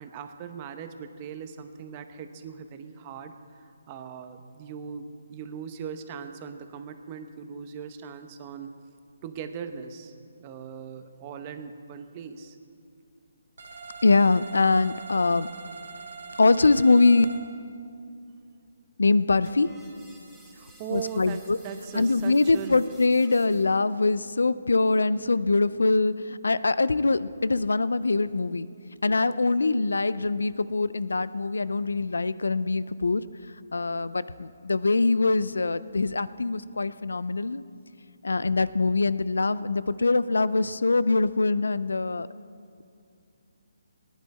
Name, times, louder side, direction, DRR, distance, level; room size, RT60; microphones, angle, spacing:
voice 1, 0.0-8.7 9.2-12.6 20.5-22.8, right 7 dB, 30° right, 8 dB, 0.8 m, -39 dB
sound 1, 13.6-17.4, right 4 dB, 75° right, 2.5 m, -42 dB
voice 2, 14.0-15.5 16.4-17.3 19.0-19.7 20.9-21.6 21.9-28.7 29.0-33.2 33.7-37.6 38.2-42.3, left 3 dB, 85° left, 17 dB, 0.5 m, -23 dB
sound 2, 19.4-23.8, right 2 dB, 10° right, 3.1 m, -53 dB
18.5 x 10.5 x 4.3 m, 2.5 s
hypercardioid pair, 155°, 0 cm